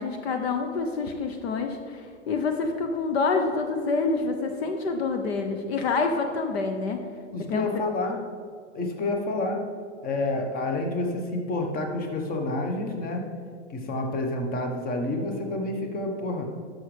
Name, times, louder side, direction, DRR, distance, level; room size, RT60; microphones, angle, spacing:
voice 1, 0.0-7.0 7.5-7.7, left 4 dB, 60° left, 5 dB, 0.9 m, -27 dB
voice 2, 7.3-8.2 8.7-9.6 10.0-13.3 13.7-16.5, left 2 dB, 25° left, 3 dB, 1.2 m, -29 dB
11.5 x 6.5 x 3.4 m, 2.1 s
hypercardioid pair, 110°, 35 cm